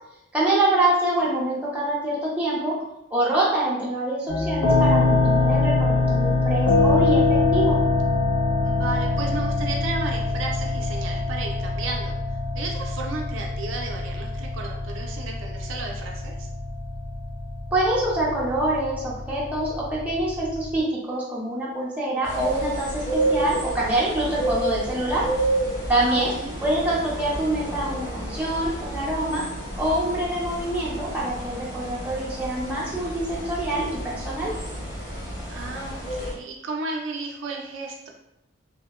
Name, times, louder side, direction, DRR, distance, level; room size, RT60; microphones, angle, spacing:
voice 1, 0.3-2.7 3.1-7.8 17.7-25.2 25.9-26.3 26.6-29.4 29.8-34.5, right 1 dB, 5° right, -6 dB, 0.5 m, -25 dB
sound 1, 4.3-20.8, left 3 dB, 80° left, 0.5 m, -24 dB
voice 2, 8.6-12.2 12.5-16.5 26.0-26.6 35.4-38.1, right 3 dB, 70° right, 0 dB, 0.4 m, -34 dB
sound 2, 22.2-36.3, right 1 dB, 60° left, 1.2 m, -30 dB
2.7 x 2.1 x 2.2 m, 0.84 s
head